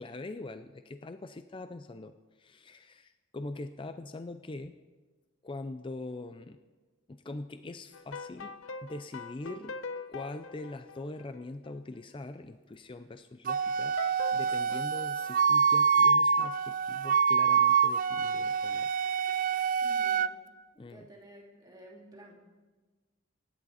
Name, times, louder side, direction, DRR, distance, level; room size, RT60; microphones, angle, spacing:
voice 1, 0.0-4.8 5.4-6.6 7.1-8.5 8.8-9.8 10.1-14.0 14.3-18.9 20.8-21.1, left 2 dB, 25° left, 10 dB, 0.4 m, -42 dB
sound 1, 7.9-11.7 14.0-15.8, left 4 dB, 85° left, 0.9 m, -43 dB
Wind instrument woodwind instrument, 13.5-20.3, right 6 dB, 45° right, 0.4 m, -26 dB
voice 2, 19.8-20.4 20.7-22.4, right 1 dB, 20° right, -2 dB, 3.0 m, -52 dB
25.0 x 10.5 x 4.2 m, 1.3 s
head